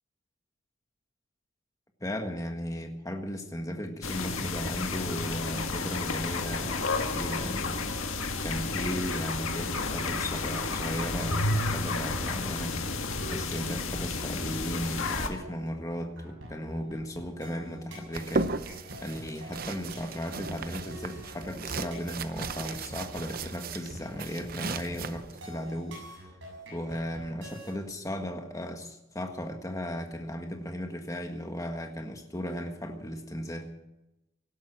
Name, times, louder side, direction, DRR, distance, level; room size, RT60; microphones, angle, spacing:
voice 1, 2.0-12.8 13.3-18.7 19.0-26.2 26.7-33.7, equal, 15° left, 4 dB, 1.6 m, -36 dB
sound 1, 4.0-15.3, left 3 dB, 80° left, 1.8 m, -31 dB
sound 2, 9.1-27.7, equal, 65° right, 7.0 m, -45 dB
sound 3, 18.1-25.4, right 3 dB, 45° right, 0.7 m, -36 dB
18.0 x 12.0 x 6.1 m, 0.94 s
head